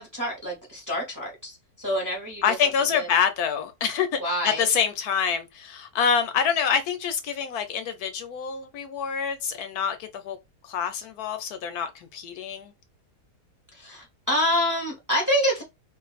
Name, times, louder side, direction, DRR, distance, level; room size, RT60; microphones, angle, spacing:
voice 1, 0.0-2.4 2.9-3.1 4.2-4.6 13.7-15.6, equal, 15° right, 0.8 m, -27 dB
voice 2, 2.4-10.4 10.6-12.7, left 7 dB, 75° left, 1.0 m, -26 dB
2.5 x 2.5 x 4.0 m
omnidirectional pair, 1.7 m